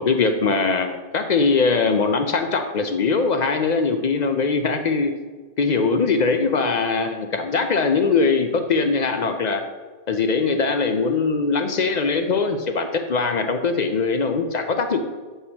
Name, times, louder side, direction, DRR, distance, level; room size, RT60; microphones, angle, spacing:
voice 1, 0.0-5.1 5.6-9.6 10.1-15.0, left 4 dB, 55° left, 6 dB, 0.5 m, -21 dB
7.9 x 5.5 x 2.9 m, 1.4 s
omnidirectional pair, 1.2 m